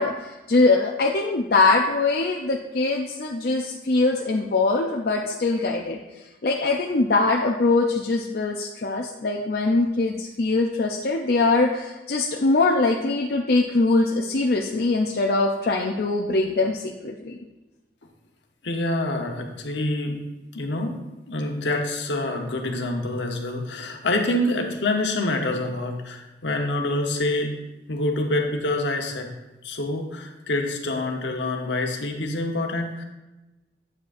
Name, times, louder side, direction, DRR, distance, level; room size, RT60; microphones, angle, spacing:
voice 1, 0.0-6.0 6.4-17.4, left 3 dB, 55° left, 0 dB, 0.5 m, -22 dB
voice 2, 18.6-20.2 20.5-21.0 21.3-27.5 27.9-29.3 29.6-33.0, left 2 dB, 75° left, 3 dB, 1.0 m, -26 dB
8.6 x 7.2 x 2.6 m, 1.1 s
head